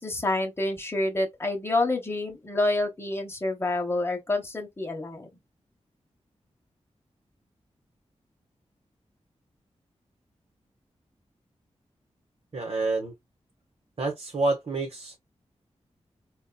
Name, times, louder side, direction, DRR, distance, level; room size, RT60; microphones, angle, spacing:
voice 1, 0.0-5.3, left 2 dB, 20° left, 1.1 m, -28 dB
voice 2, 12.5-13.1 14.0-15.2, right 3 dB, 55° right, 1.0 m, -28 dB
4.0 x 2.4 x 2.2 m
wide cardioid pair, 105°, 12 cm